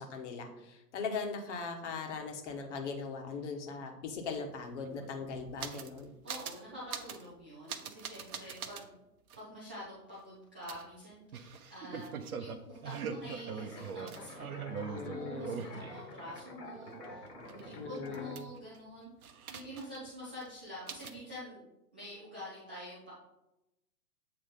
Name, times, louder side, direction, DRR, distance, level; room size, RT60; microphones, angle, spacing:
voice 1, 0.0-6.1 14.8-15.7 17.7-18.5, left 4 dB, 45° left, 4 dB, 1.4 m, -40 dB
sound 1, 4.3-4.4 4.6-6.0 6.3-6.6 6.9-7.3 7.7-8.8 9.3-9.4 10.7-16.4 16.8-18.8 19.2-20.1 20.4-20.5 20.9-21.2, right 6 dB, 60° right, 0.8 m, -42 dB
voice 2, 6.2-9.0 9.3-12.1 12.4-19.1 19.5-21.6 21.9-23.1, equal, 10° right, -11 dB, 0.3 m, -47 dB
sound 2, 13.4-18.3, left 2 dB, 75° left, 2.0 m, -49 dB
7.9 x 3.2 x 5.4 m, 0.90 s
figure-of-eight pair, 110°, 48 cm